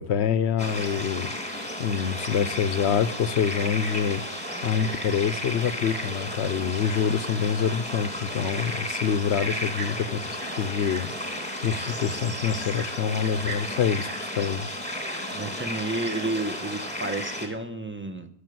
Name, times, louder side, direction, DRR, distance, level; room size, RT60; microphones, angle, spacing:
voice 1, 0.0-4.2 4.6-14.8, left 7 dB, 90° left, 1.0 m, -26 dB
sound 1, 0.6-17.5, left 1 dB, 5° left, 2.3 m, -33 dB
voice 2, 15.3-18.3, right 2 dB, 10° right, 1.1 m, -31 dB
13.5 x 6.9 x 9.4 m
omnidirectional pair, 1.1 m